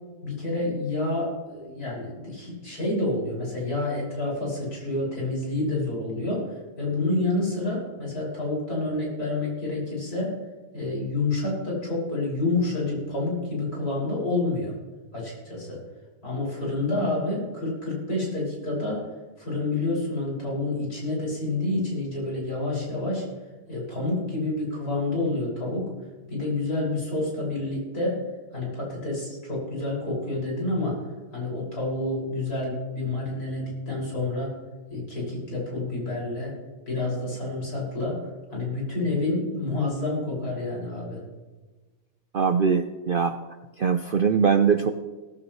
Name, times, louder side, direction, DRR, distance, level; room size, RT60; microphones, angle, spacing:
voice 1, 0.2-10.4 10.7-14.7 15.1-15.8 16.2-19.1 19.4-23.3 23.7-25.9 26.3-28.2 28.5-31.0 31.3-34.5 34.9-36.5 36.9-41.2, left 2 dB, 80° left, -5 dB, 6.6 m, -28 dB
voice 2, 42.3-43.4 43.8-44.9, right 6 dB, 60° right, 8 dB, 0.5 m, -22 dB
17.5 x 15.5 x 3.2 m, 1.3 s
omnidirectional pair, 1.6 m